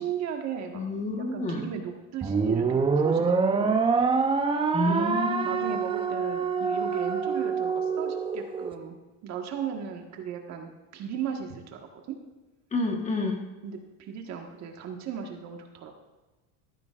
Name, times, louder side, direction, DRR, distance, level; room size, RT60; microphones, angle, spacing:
voice 1, 0.0-0.8 1.1-3.8 4.8-8.9 9.2-11.8 12.1-12.2 13.6-15.9, right 8 dB, 50° right, 3 dB, 1.5 m, -36 dB
voice 2, 0.7-1.7 4.7-5.7 12.7-13.4, left 2 dB, 20° left, 2 dB, 1.3 m, -29 dB
sound 1, 2.2-8.7, right 5 dB, 15° right, 0.6 m, -26 dB
14.0 x 12.0 x 2.5 m, 1.2 s
cardioid pair, 135°, 36 cm